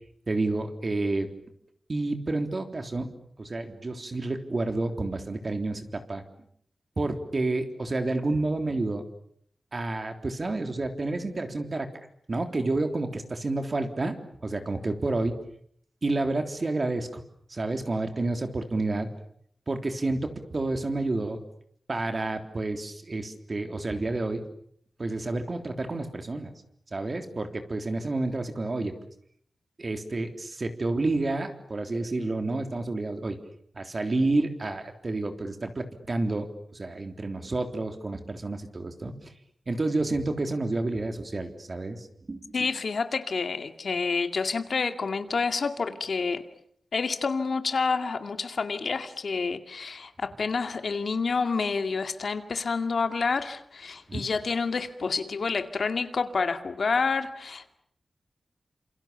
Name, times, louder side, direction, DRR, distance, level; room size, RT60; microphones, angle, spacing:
voice 1, 0.3-1.3 1.9-3.1 3.4-6.2 7.0-9.0 9.7-11.9 12.3-14.2 14.4-15.4 16.0-17.2 17.5-19.1 19.7-21.4 21.9-24.4 25.0-26.5 26.9-28.9 29.8-33.4 33.7-36.5 36.7-39.2 39.7-42.7 54.1-54.3, right 2 dB, 40° right, 6 dB, 3.4 m, -29 dB
voice 2, 42.5-46.4 46.9-57.8, left 4 dB, 65° left, 8 dB, 2.2 m, -28 dB
28.5 x 27.5 x 7.0 m, 0.67 s
wide cardioid pair, 110°, 0 cm